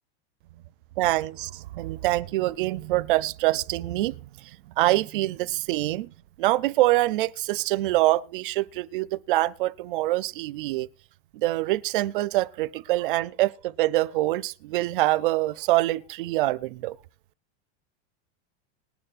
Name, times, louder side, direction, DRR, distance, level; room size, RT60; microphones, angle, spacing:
voice 1, 1.0-4.2 4.4-6.1 6.4-10.9 11.3-17.0, right 17 dB, 50° right, 0.4 m, -25 dB
19.5 x 11.5 x 2.4 m
supercardioid pair, 175°, 35 cm